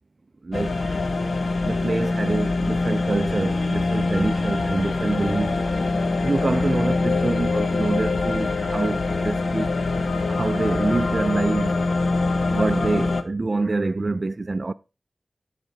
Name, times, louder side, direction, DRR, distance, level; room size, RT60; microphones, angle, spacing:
voice 1, 0.4-1.0 1.6-5.5 6.2-9.7 10.3-11.7 12.5-14.7, right 3 dB, 45° right, 0.4 m, -26 dB
sound 1, 0.5-13.2, left 3 dB, 70° left, 0.8 m, -24 dB
10.5 x 4.9 x 4.5 m
wide cardioid pair, 70°, 0 cm